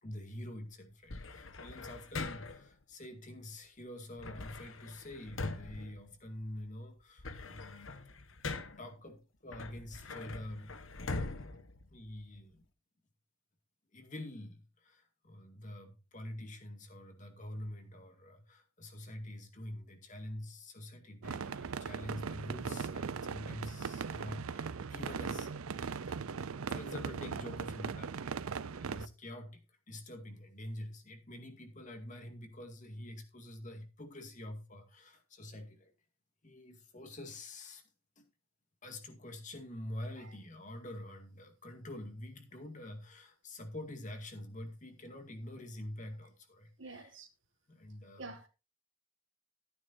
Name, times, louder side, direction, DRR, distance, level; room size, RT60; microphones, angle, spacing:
voice 1, 0.0-8.0 8.8-11.5 11.9-12.6 13.9-35.9 36.4-37.8 38.2-38.3 38.8-47.2 47.7-48.3, left 1 dB, 35° left, 2.2 m, -46 dB
sound 1, 1.1-2.7 4.2-6.6 7.0-8.9 9.5-12.5, left 3 dB, 65° left, 1.3 m, -42 dB
sound 2, 21.2-29.1, right 5 dB, 85° right, 0.6 m, -39 dB
voice 2, 46.8-47.3 48.2-48.5, right 3 dB, 60° right, 2.0 m, -47 dB
14.5 x 9.6 x 2.7 m
head